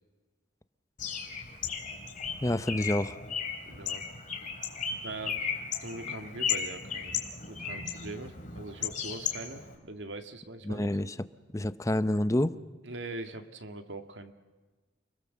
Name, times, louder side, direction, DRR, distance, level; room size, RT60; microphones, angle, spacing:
Bird, 1.0-9.7, left 7 dB, 45° left, 3.4 m, -35 dB
voice 1, 2.4-3.2 10.7-11.1 11.5-12.5, left 1 dB, 15° left, 13 dB, 0.7 m, -28 dB
voice 2, 3.7-4.0 5.0-5.4 5.8-7.2 7.5-10.9 12.8-14.3, right 2 dB, 75° right, 7 dB, 2.0 m, -42 dB
29.5 x 21.5 x 7.5 m, 1.3 s
head